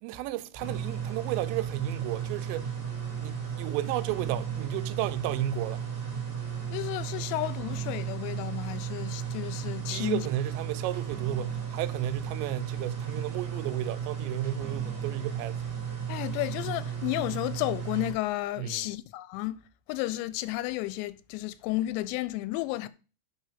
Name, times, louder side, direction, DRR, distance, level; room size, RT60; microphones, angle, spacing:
voice 1, 0.0-2.7 3.2-5.9 9.9-15.6 18.6-18.9, right 12 dB, 90° right, 2.9 m, -33 dB
sound 1, 0.6-18.1, right 8 dB, 15° right, 2.5 m, -34 dB
voice 2, 6.7-10.2 16.1-22.9, left 17 dB, 90° left, 2.8 m, -32 dB
8.2 x 4.5 x 5.6 m
omnidirectional pair, 5.0 m